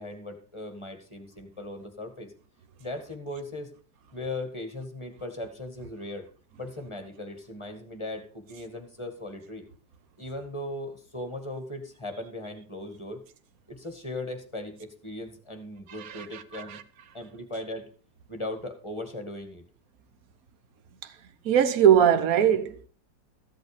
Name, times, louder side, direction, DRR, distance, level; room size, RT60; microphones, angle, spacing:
voice 1, 0.0-2.3 2.8-3.7 4.1-6.3 6.6-9.7 10.2-13.2 13.7-16.8 17.1-17.9 18.3-19.6, left 1 dB, 15° left, 1.8 m, -38 dB
voice 2, 16.0-16.8 21.0-21.1 21.4-22.9, right 9 dB, 55° right, 1.4 m, -22 dB
14.5 x 8.1 x 5.0 m
omnidirectional pair, 2.0 m